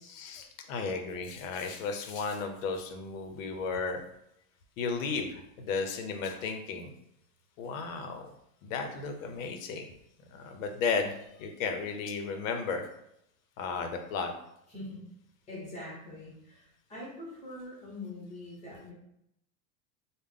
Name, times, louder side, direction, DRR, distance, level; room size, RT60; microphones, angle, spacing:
voice 1, 0.1-4.0 4.8-6.9 7.6-8.3 8.6-9.9 10.3-12.8 13.6-14.3, left 4 dB, 65° left, 5 dB, 0.6 m, -34 dB
voice 2, 14.7-15.0 15.5-18.9, left 2 dB, 15° left, -5 dB, 0.8 m, -43 dB
3.4 x 2.1 x 3.6 m, 0.78 s
supercardioid pair, 180°, 44 cm